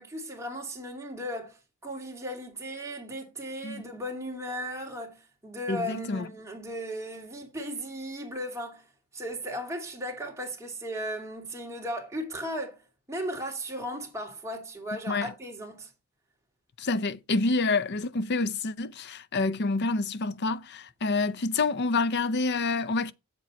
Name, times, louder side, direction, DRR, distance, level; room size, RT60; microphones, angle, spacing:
voice 1, 0.0-8.9 9.1-12.8 13.1-15.9, equal, 15° right, 2.6 m, -36 dB
voice 2, 5.7-6.3 15.1-15.3 16.8-23.1, left 3 dB, 50° left, 0.6 m, -28 dB
7.6 x 7.5 x 4.2 m
head